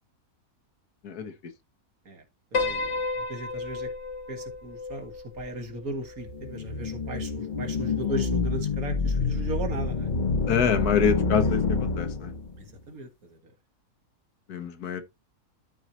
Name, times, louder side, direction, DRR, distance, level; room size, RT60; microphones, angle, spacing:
Piano, 2.5-7.0, left 3 dB, 50° left, 1.5 m, -33 dB
voice 1, 2.5-3.0 3.3-3.9 4.3-10.1 12.6-13.4, right 1 dB, 65° right, 2.2 m, -36 dB
sound 1, 6.3-12.6, left 4 dB, 35° left, 1.1 m, -28 dB
voice 2, 10.5-11.6 12.0-12.3 14.5-15.0, left 6 dB, 80° left, 1.7 m, -25 dB
12.5 x 4.7 x 2.9 m
omnidirectional pair, 1.6 m